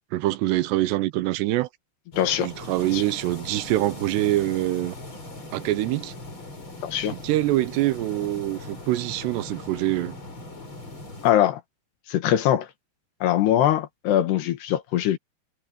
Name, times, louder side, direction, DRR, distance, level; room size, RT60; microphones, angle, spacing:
voice 1, 0.1-1.7 2.4-5.0 5.5-6.1 7.1-10.1, right 16 dB, 90° right, 3.0 m, -25 dB
sound 1, 2.1-11.3, left 2 dB, 30° left, 6.1 m, -40 dB
voice 2, 2.2-2.5 2.9-3.0 6.8-7.2 11.2-11.6 12.1-12.7 13.2-15.2, left 11 dB, 80° left, 3.7 m, -22 dB
omnidirectional pair, 4.7 m